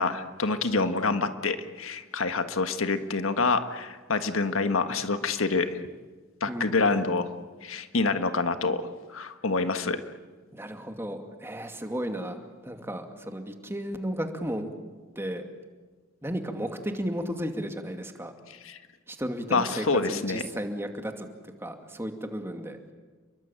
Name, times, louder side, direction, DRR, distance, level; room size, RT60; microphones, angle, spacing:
voice 1, 0.0-5.8 6.4-7.3 7.6-8.8 9.1-10.0 18.6-18.8 19.5-20.4, left 3 dB, 85° left, 8 dB, 1.6 m, -27 dB
voice 2, 6.5-6.9 10.5-14.7 15.2-15.4 16.2-18.3 19.1-21.3 21.6-22.9, equal, 10° right, 5 dB, 2.4 m, -34 dB
30.0 x 22.5 x 9.0 m, 1.3 s
head